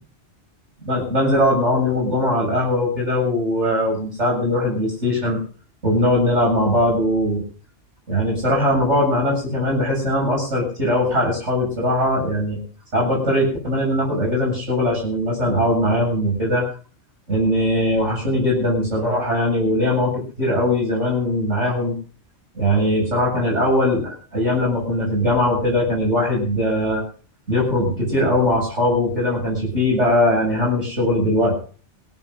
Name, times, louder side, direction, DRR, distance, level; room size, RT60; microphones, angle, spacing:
voice 1, 0.8-5.4 5.8-7.4 8.1-12.6 12.9-16.7 17.3-21.9 22.5-27.0 27.5-31.5, left 1 dB, 75° right, -1 dB, 7.7 m, -20 dB
22.5 x 17.0 x 2.7 m, 0.41 s
omnidirectional pair, 1.2 m